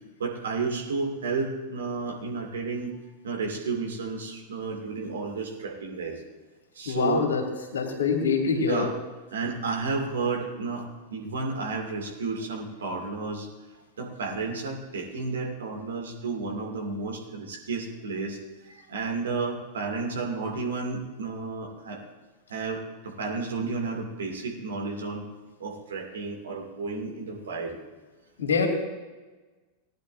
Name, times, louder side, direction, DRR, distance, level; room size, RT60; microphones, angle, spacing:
voice 1, 0.2-2.9 3.2-6.2 6.7-7.3 8.7-8.9 9.3-13.5 14.0-18.4 18.6-22.0 22.5-25.2 25.6-27.8, right 4 dB, 65° right, 1 dB, 2.4 m, -32 dB
voice 2, 6.9-7.4 7.7-8.9 28.4-28.7, left 5 dB, 65° left, 2 dB, 2.2 m, -25 dB
19.0 x 10.5 x 2.7 m, 1.2 s
figure-of-eight pair, 90°, 0 cm